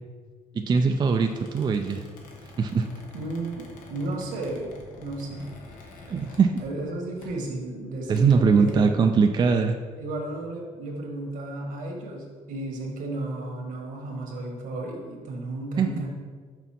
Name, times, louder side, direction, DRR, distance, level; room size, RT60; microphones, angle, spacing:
voice 1, 0.7-2.0 2.6-2.9 6.1-6.6 8.1-9.8 15.8-16.1, right 5 dB, 35° right, 5 dB, 0.4 m, -21 dB
Squeak, 0.8-6.9 7.2-7.5 8.0-8.7, left 2 dB, 80° left, 1.4 m, -47 dB
voice 2, 3.1-4.7 5.0-5.5 6.6-8.9 10.0-16.1, right 2 dB, 75° right, 1 dB, 1.6 m, -33 dB
6.2 x 4.0 x 5.8 m, 1.5 s
cardioid pair, 105°, 14 cm